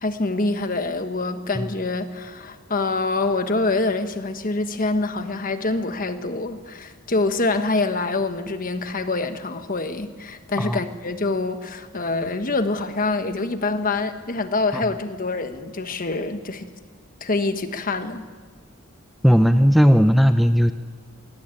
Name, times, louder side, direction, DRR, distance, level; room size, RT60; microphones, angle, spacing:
voice 1, 0.0-16.6 17.2-18.2, left 3 dB, 40° left, 9 dB, 1.2 m, -25 dB
voice 2, 19.2-20.7, equal, ahead, 8 dB, 0.5 m, -16 dB
21.0 x 16.5 x 8.9 m, 1.5 s
head